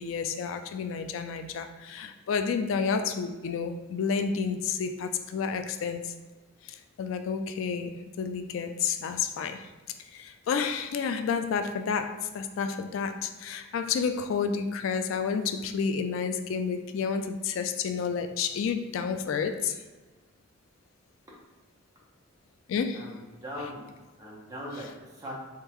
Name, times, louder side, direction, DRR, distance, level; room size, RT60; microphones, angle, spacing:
voice 1, 0.0-6.1 6.6-9.7 10.1-19.8 22.7-23.1, left 6 dB, 75° left, 8 dB, 0.3 m, -30 dB
voice 2, 22.9-23.9 24.2-25.3, equal, 15° right, -5 dB, 1.0 m, -40 dB
3.6 x 3.6 x 3.0 m, 1.3 s
head